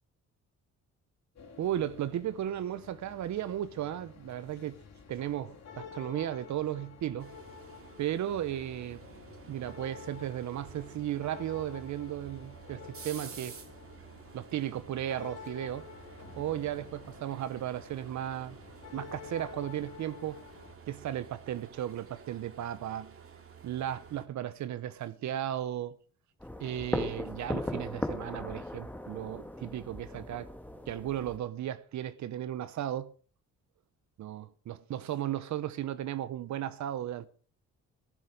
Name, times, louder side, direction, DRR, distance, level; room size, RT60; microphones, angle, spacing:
sound 1, 1.4-20.8, left 7 dB, 60° left, 3.7 m, -50 dB
voice 1, 1.6-4.7 5.1-7.3 8.0-9.0 9.5-13.6 14.3-15.9 16.4-18.6 18.9-20.4 20.9-23.1 23.6-26.0 26.6-30.5 30.9-33.1 34.2-37.3, right 11 dB, 70° right, 0.9 m, -35 dB
sound 2, 7.2-24.3, right 6 dB, 50° right, 2.4 m, -51 dB
sound 3, 26.4-31.4, left 1 dB, 5° left, 2.0 m, -37 dB
15.0 x 11.0 x 5.0 m
cardioid pair, 90°, 30 cm